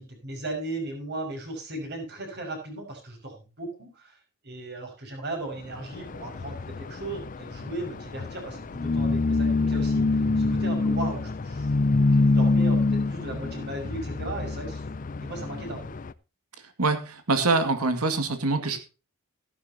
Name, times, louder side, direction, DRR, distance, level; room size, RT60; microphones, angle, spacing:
voice 1, 0.0-4.2 4.4-11.8 12.1-14.8 15.2-15.9, right 2 dB, 45° right, 2 dB, 5.8 m, -36 dB
sound 1, 5.7-16.1, left 3 dB, 35° left, 0.4 m, -26 dB
voice 2, 16.8-18.8, right 3 dB, 85° right, 8 dB, 2.2 m, -24 dB
14.0 x 12.0 x 2.9 m, 0.32 s
head